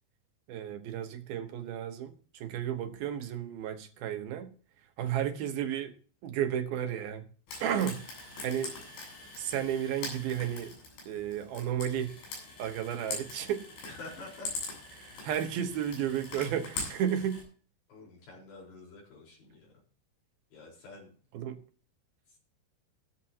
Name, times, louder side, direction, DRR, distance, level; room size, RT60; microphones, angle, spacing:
voice 1, 0.5-4.5 5.0-5.9 6.2-7.2 7.6-8.0 8.4-8.8 9.4-10.8 11.1-12.2 12.6-13.7 14.9-17.4 21.3-21.6, right 9 dB, 70° right, 2.5 m, -33 dB
Frying (food), 7.5-17.4, left 3 dB, 90° left, 10.0 m, -43 dB
voice 2, 13.8-14.6 17.9-19.7 20.5-21.1, left 3 dB, 65° left, 6.5 m, -48 dB
17.0 x 13.5 x 2.9 m
omnidirectional pair, 5.4 m